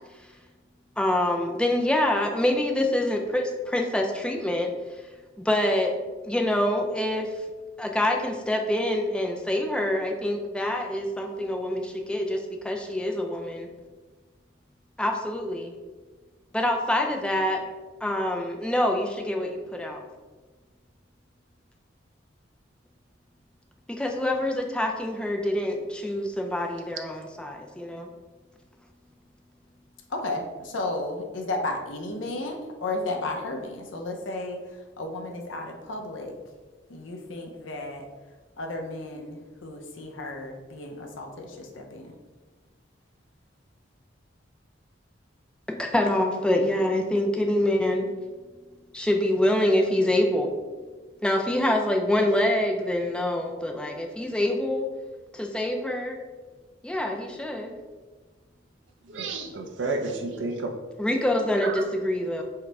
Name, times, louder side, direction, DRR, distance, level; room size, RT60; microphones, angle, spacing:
voice 1, 1.0-4.7 5.4-5.9 6.2-7.3 7.8-13.7 15.0-15.7 16.5-17.6 18.0-20.0 23.9-28.1 45.8-48.1 48.9-50.5 51.2-54.9 55.3-56.2 56.8-57.7 61.0-62.4, left 1 dB, 5° left, 2 dB, 0.4 m, -25 dB
voice 2, 30.1-36.4 36.9-38.1 38.6-42.1, left 2 dB, 85° left, 2 dB, 0.7 m, -33 dB
voice 3, 59.0-60.7 61.6-61.8, right 3 dB, 75° right, 4 dB, 0.5 m, -31 dB
4.7 x 2.2 x 4.6 m, 1.3 s
head